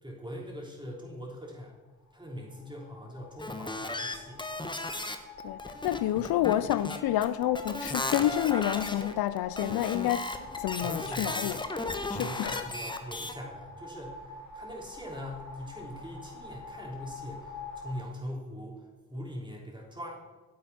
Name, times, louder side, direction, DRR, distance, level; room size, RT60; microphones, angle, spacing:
voice 1, 0.0-1.7 2.1-4.4 6.1-6.2 10.8-11.5 12.2-14.2 14.5-20.2, equal, 10° right, 3.4 m, -42 dB
sound 1, 2.1-18.0, left 3 dB, 40° left, 2.2 m, -45 dB
sound 2, 3.4-5.2 5.4-13.3, left 2 dB, 10° left, 1.0 m, -35 dB
voice 2, 5.8-10.3 10.6-11.6 12.1-12.6, left 13 dB, 55° left, 0.5 m, -29 dB
9.6 x 8.1 x 4.2 m
hypercardioid pair, 45°, 43 cm